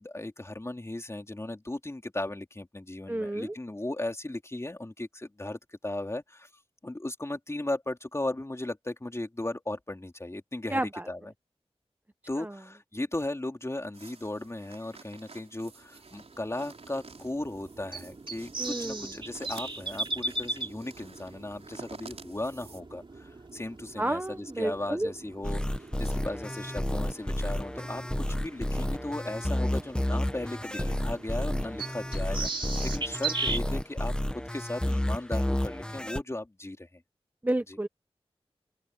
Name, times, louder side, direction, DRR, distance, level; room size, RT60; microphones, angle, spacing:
voice 1, 0.0-6.5 6.8-10.8 11.1-11.3 12.3-37.0 37.7-37.8, left 1 dB, 25° left, 3.4 m, -36 dB
voice 2, 3.1-3.5 10.7-11.0 12.4-12.5 18.6-19.1 24.0-25.1 37.4-37.9, right 1 dB, 15° right, 1.0 m, -30 dB
sound 1, 13.9-22.8, right 4 dB, 80° right, 5.1 m, -51 dB
sound 2, 15.8-33.6, right 3 dB, 55° right, 2.6 m, -39 dB
sound 3, 25.4-36.2, left 1 dB, 10° left, 1.0 m, -31 dB
open air
wide cardioid pair, 70°, 11 cm